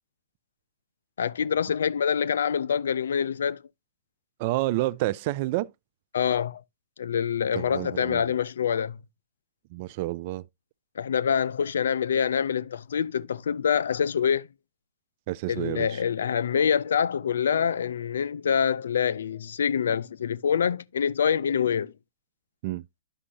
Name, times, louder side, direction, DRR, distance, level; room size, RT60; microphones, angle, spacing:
voice 1, 1.2-3.6 6.1-6.6 7.0-9.0 11.0-14.5 15.5-21.9, left 7 dB, 80° left, 0.4 m, -25 dB
voice 2, 4.4-5.7 7.5-8.2 9.7-10.4 15.3-16.0 22.6-22.8, right 17 dB, 50° right, 0.4 m, -29 dB
9.9 x 6.2 x 2.8 m
hypercardioid pair, 130°, 0 cm